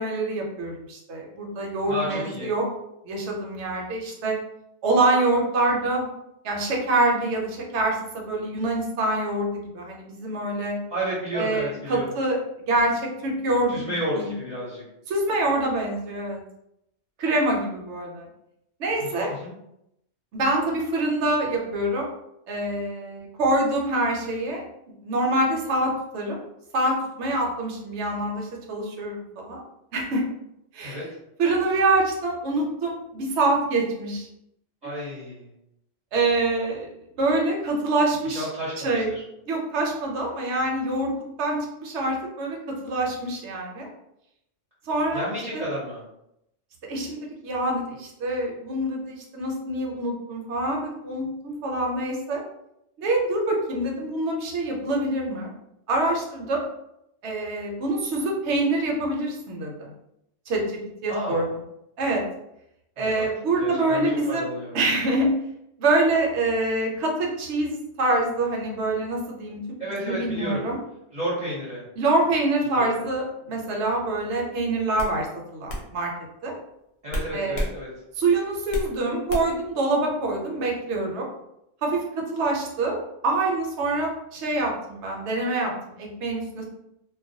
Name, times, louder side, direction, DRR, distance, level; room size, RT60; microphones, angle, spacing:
voice 1, 0.0-2.6 3.0-4.4 4.8-6.1 6.4-10.8 11.3-12.4 12.7-13.8 14.1-14.3 15.1-16.4 17.2-18.3 18.8-19.3 20.3-22.1 22.5-24.6 25.0-26.4 26.7-29.6 29.9-30.2 30.7-31.0 31.4-34.3 34.8-34.9 36.1-36.9 37.2-38.5 38.8-39.1 39.4-41.1 41.4-43.9 44.9-45.3 45.5-45.6 46.9-52.4 53.0-55.5 55.9-56.6 57.2-59.9 60.5-61.4 62.0-62.2 63.0-64.5 64.7-65.3 65.8-69.6 70.1-70.8 72.0-76.1 76.4-76.5 77.3-77.6 78.2-81.3 81.8-82.0 82.3-83.0 83.2-85.7 86.0-86.6, right 2 dB, 70° right, 0 dB, 0.9 m, -25 dB
voice 2, 1.8-2.5 10.9-12.1 13.7-14.8 19.0-19.5 30.8-31.1 34.8-35.5 38.2-39.2 45.1-46.0 61.1-61.5 63.0-63.3 63.6-64.8 69.8-70.7 71.1-71.8 72.7-72.9 77.0-77.9, right 1 dB, 45° right, -8 dB, 0.7 m, -32 dB
sound 1, 74.2-74.4 75.0-75.2 75.7-75.9 77.1-77.7 78.1-78.9 79.3-79.6, equal, 70° left, 0.9 m, -30 dB
2.3 x 2.1 x 2.6 m, 0.82 s
omnidirectional pair, 1.2 m